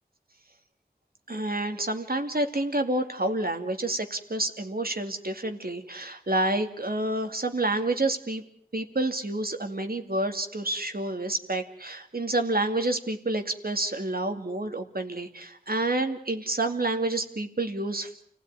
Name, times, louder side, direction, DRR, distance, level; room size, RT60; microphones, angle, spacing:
voice 1, 1.3-8.4 8.7-18.1, right 2 dB, 65° right, 6 dB, 2.5 m, -29 dB
29.0 x 16.5 x 9.7 m, 0.67 s
wide cardioid pair, 50°, 17 cm